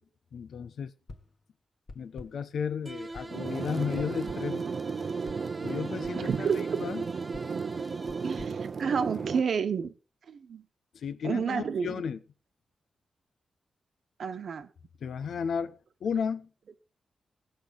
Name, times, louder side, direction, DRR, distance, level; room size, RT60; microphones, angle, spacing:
voice 1, 0.3-0.9 1.9-4.7 5.6-6.5 6.8-7.0 10.9-12.2 15.0-16.5, left 6 dB, 85° left, 0.9 m, -33 dB
sound 1, 1.1-1.4 1.9-2.5 3.1-3.5 4.0-4.6 5.3-5.5 6.0-6.6 7.3-9.4, left 3 dB, 45° left, 1.6 m, -49 dB
sound 2, 2.9-8.8, right 2 dB, 20° right, 1.0 m, -42 dB
sound 3, 3.3-9.4, right 5 dB, 50° right, 0.7 m, -34 dB
voice 2, 6.2-6.8 8.2-9.9 10.3-10.6 11.2-11.9 14.2-14.7, right 6 dB, 70° right, 1.2 m, -30 dB
17.5 x 7.0 x 5.5 m
wide cardioid pair, 130°, 0 cm